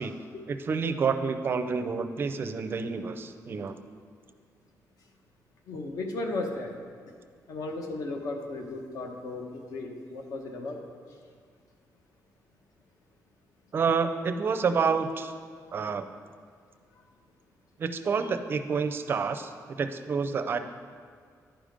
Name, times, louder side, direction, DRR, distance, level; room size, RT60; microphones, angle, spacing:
voice 1, 0.5-3.8 13.7-15.3 15.7-16.1 17.8-20.6, right 5 dB, 35° right, 9 dB, 0.4 m, -28 dB
voice 2, 5.7-6.7 7.5-10.8, left 2 dB, 65° left, 3 dB, 1.0 m, -35 dB
10.0 x 5.0 x 5.1 m, 2.1 s
wide cardioid pair, 175°, 7 cm